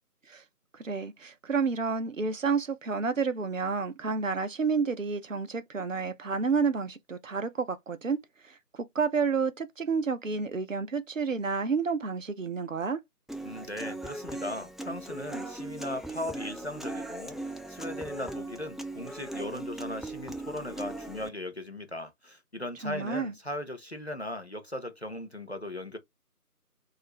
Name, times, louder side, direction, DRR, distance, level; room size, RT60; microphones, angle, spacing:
voice 1, 0.7-8.2 8.4-13.0 22.8-23.3, right 5 dB, 55° right, 0.5 m, -30 dB
Human voice / Acoustic guitar, 13.3-21.3, right 2 dB, ahead, 0.3 m, -39 dB
voice 2, 13.4-26.0, left 1 dB, 45° left, 0.6 m, -38 dB
2.5 x 2.4 x 3.0 m
figure-of-eight pair, 170°, 47 cm